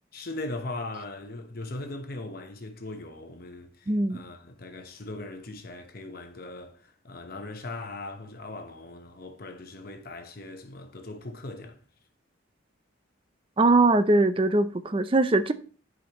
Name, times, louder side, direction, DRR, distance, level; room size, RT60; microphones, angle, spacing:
voice 1, 0.1-11.8, left 2 dB, 50° left, 0.9 m, -39 dB
voice 2, 3.9-4.2 13.6-15.5, right 2 dB, 25° right, 0.5 m, -21 dB
11.0 x 5.2 x 3.0 m
head